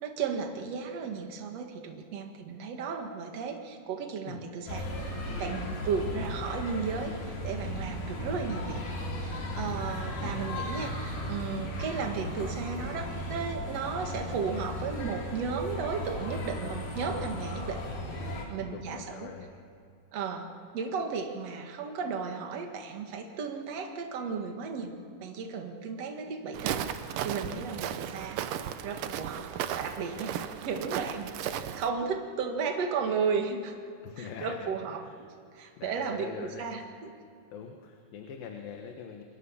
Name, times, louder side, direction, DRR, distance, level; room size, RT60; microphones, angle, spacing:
voice 1, 0.0-8.8 9.2-17.8 18.1-19.3 20.1-24.9 25.2-26.9 27.2-28.4 28.8-30.4 30.6-33.8 34.2-35.3 35.5-36.8, right 5 dB, 50° right, 4 dB, 2.8 m, -34 dB
sound 1, 4.7-18.5, left 1 dB, 70° left, 5.2 m, -36 dB
voice 2, 5.6-5.9 9.7-10.0 18.6-19.6 27.5-27.7 28.0-28.2 34.0-35.1 35.8-36.8 37.5-39.2, left 6 dB, 85° left, 3 dB, 3.3 m, -44 dB
Walk footsteps, 26.5-31.9, right 10 dB, 75° right, 2.5 m, -35 dB
27.5 x 24.0 x 7.3 m, 2.4 s
omnidirectional pair, 4.0 m